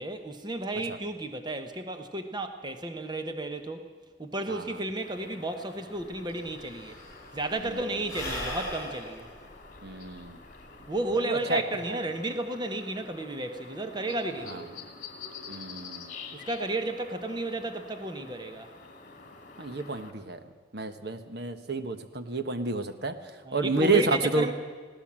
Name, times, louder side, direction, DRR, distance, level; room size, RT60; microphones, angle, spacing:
voice 1, 0.0-3.9 4.2-7.0 7.3-9.3 10.9-14.6 16.3-18.7 23.4-24.5, right 2 dB, 20° right, 7 dB, 1.0 m, -33 dB
voice 2, 4.5-4.8 7.6-7.8 9.8-10.4 11.3-11.6 14.5-14.6 15.5-16.1 19.6-20.4 20.7-24.5, right 3 dB, 55° right, 9 dB, 1.3 m, -30 dB
sound 1, 5.0-20.1, left 4 dB, 40° left, 2.3 m, -48 dB
Sigh / Breathing, 6.0-6.1 6.3-11.0, left 1 dB, 15° left, 6.3 m, -39 dB
21.0 x 16.5 x 7.5 m, 1.5 s
head